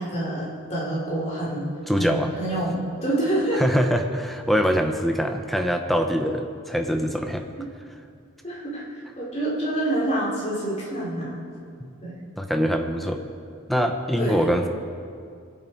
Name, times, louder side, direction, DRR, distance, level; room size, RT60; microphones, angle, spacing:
voice 1, 0.0-1.7 2.0-3.6 8.4-11.4 12.0-12.1 14.2-14.5, right 1 dB, 30° left, -6 dB, 3.9 m, -27 dB
voice 2, 1.9-2.3 3.6-7.4 11.8-12.0 12.4-13.2 13.7-14.7, equal, ahead, 4 dB, 0.8 m, -23 dB
22.5 x 8.1 x 4.6 m, 2.3 s
head